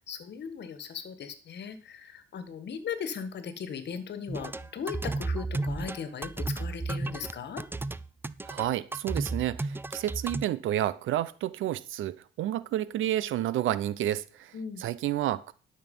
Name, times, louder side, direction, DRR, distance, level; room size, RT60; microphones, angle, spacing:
voice 1, 0.1-7.6 14.5-14.8, left 7 dB, 60° left, 1.7 m, -38 dB
sound 1, 4.3-10.4, right 3 dB, 10° right, 0.4 m, -33 dB
voice 2, 8.4-15.5, right 13 dB, 80° right, 0.8 m, -30 dB
12.0 x 6.6 x 5.5 m
cardioid pair, 90°, 20 cm